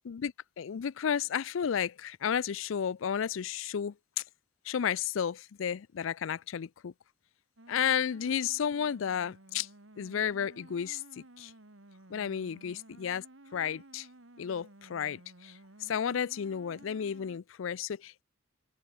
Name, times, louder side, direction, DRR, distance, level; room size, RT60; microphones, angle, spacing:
voice 1, 0.0-3.9 4.6-6.9 7.7-9.7 10.0-11.0 11.4-11.5 12.1-13.2 13.5-14.1 14.4-18.2, left 8 dB, 75° left, 0.4 m, -32 dB
sound 1, 7.6-17.4, right 1 dB, 65° right, 2.5 m, -55 dB
open air
head